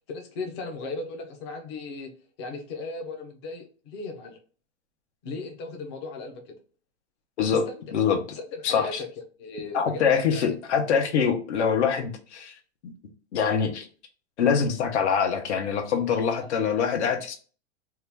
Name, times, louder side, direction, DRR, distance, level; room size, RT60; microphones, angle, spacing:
voice 1, 0.1-2.1 2.4-4.4 5.2-6.5 7.5-7.7 8.3-9.1 9.4-10.4, left 3 dB, 25° left, 3 dB, 0.4 m, -36 dB
voice 2, 8.6-9.0 9.7-12.5 12.8-12.9 13.3-13.9 14.4-17.3, left 6 dB, 80° left, 5 dB, 0.9 m, -24 dB
2.8 x 2.2 x 3.3 m, 0.39 s
supercardioid pair, 170°, 34 cm